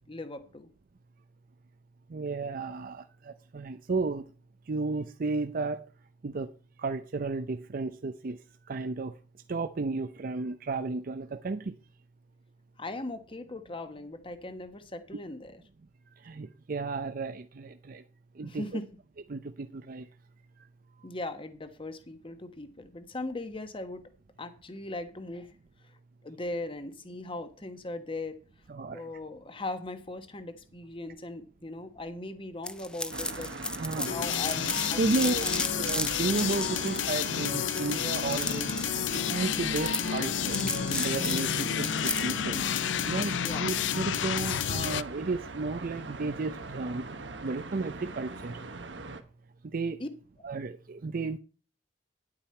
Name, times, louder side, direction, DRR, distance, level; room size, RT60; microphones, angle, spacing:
voice 1, 0.1-0.7 12.8-15.6 18.4-18.9 21.0-24.1 24.4-25.5 25.8-26.0 26.2-28.4 28.9-33.5 34.0-34.5 34.9-35.7 43.4-43.7 50.0-50.1, left 2 dB, 30° left, 1.1 m, -39 dB
voice 2, 2.1-4.2 4.7-5.8 6.2-6.5 6.8-8.4 8.7-9.1 9.5-11.7 16.2-18.0 18.4-18.6 19.3-20.1 28.7-29.0 33.8-34.1 35.0-35.4 35.7-40.6 40.9-42.6 43.1-47.1 47.4-48.6 49.7-50.0 50.4-51.4, right 3 dB, 50° right, 0.5 m, -33 dB
sound 1, 32.7-42.4, left 2 dB, 5° left, 0.6 m, -35 dB
sound 2, 33.1-49.2, right 3 dB, 80° right, 1.2 m, -40 dB
sound 3, 34.0-45.0, left 10 dB, 80° left, 0.4 m, -31 dB
10.0 x 8.9 x 4.3 m
head